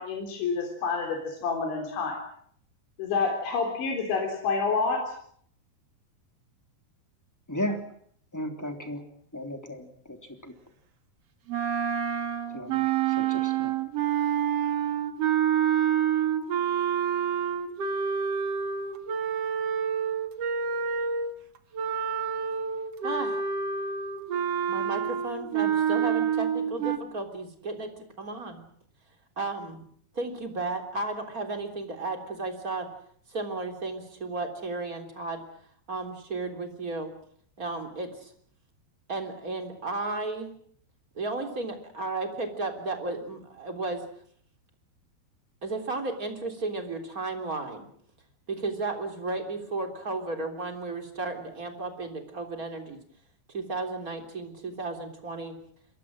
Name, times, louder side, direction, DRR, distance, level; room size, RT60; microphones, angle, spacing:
voice 1, 0.0-2.2 3.0-5.0, left 4 dB, 75° left, 2 dB, 5.9 m, -28 dB
voice 2, 7.5-7.9 8.3-9.0 9.3-10.5 12.5-13.8, equal, 5° left, 4 dB, 2.3 m, -35 dB
sound 1, 11.5-21.3 21.7-27.0, right 8 dB, 55° right, 1.8 m, -27 dB
voice 3, 23.0-23.4 24.7-28.6 29.3-29.9 30.1-32.9 33.3-35.4 35.9-37.1 37.6-38.3 39.1-40.5 41.1-44.0 45.6-47.9 48.5-53.0 53.5-55.6, right 3 dB, 20° right, 4 dB, 3.2 m, -34 dB
28.0 x 23.0 x 6.4 m, 0.63 s
omnidirectional pair, 5.3 m